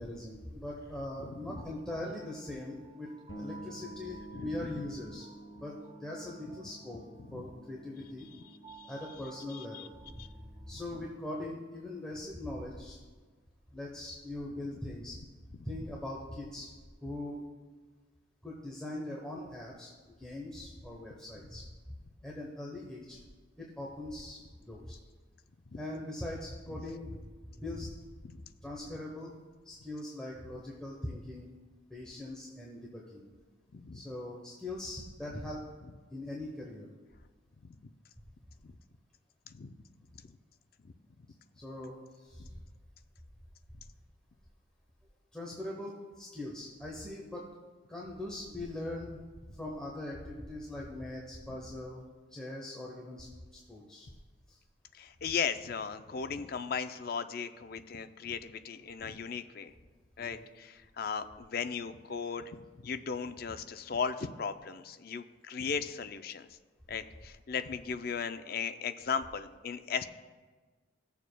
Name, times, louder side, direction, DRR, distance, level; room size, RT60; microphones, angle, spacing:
voice 1, 0.0-3.1 3.4-5.3 5.6-7.0 7.3-8.3 8.9-10.2 10.7-13.0 13.7-15.2 15.6-16.7 17.0-17.4 18.4-21.9 22.2-23.2 23.6-25.0 25.7-27.9 28.6-29.3 29.6-31.5 31.9-33.3 33.9-35.6 36.1-36.9 41.5-42.6 45.3-47.6 47.9-49.2 49.5-54.1 54.5-54.6 58.8-58.9 60.2-60.4, left 1 dB, 5° left, -4 dB, 0.9 m, -41 dB
voice 2, 1.2-1.6 4.3-4.7 7.3-7.4 8.8-8.9 9.5-9.9 10.2-10.3 25.7-25.8 33.7-34.0 38.6-38.7 39.5-39.8 40.8-40.9 42.4-42.5 54.9-59.7 60.2-66.5 66.9-70.0, left 6 dB, 50° left, 10 dB, 0.4 m, -37 dB
sound 1, 1.6-12.4, right 5 dB, 30° right, 0.6 m, -57 dB
sound 2, 3.3-12.9, right 1 dB, 85° left, 1.2 m, -52 dB
16.5 x 7.1 x 2.2 m, 1.4 s
head